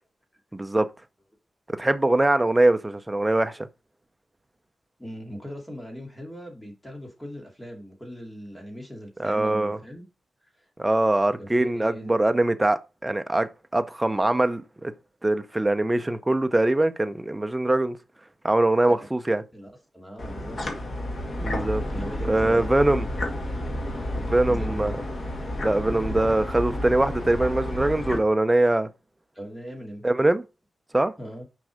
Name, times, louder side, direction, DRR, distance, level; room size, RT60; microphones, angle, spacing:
voice 1, 0.5-0.9 1.7-3.7 9.2-9.8 10.8-14.9 15.2-18.0 18.4-19.4 21.4-21.8 22.3-23.1 24.2-25.0 25.6-28.9 30.0-30.4 30.9-31.1, right 2 dB, 10° right, 0.6 m, -22 dB
voice 2, 5.0-10.0 10.6-10.7 11.4-12.1 18.9-19.0 19.5-20.6 21.9-22.7 24.5-24.9 29.3-30.0 31.2-31.4, equal, 5° left, 2.4 m, -39 dB
sound 1, 20.2-28.2, left 1 dB, 40° left, 1.9 m, -31 dB
6.3 x 5.3 x 5.0 m
wide cardioid pair, 155°, 0 cm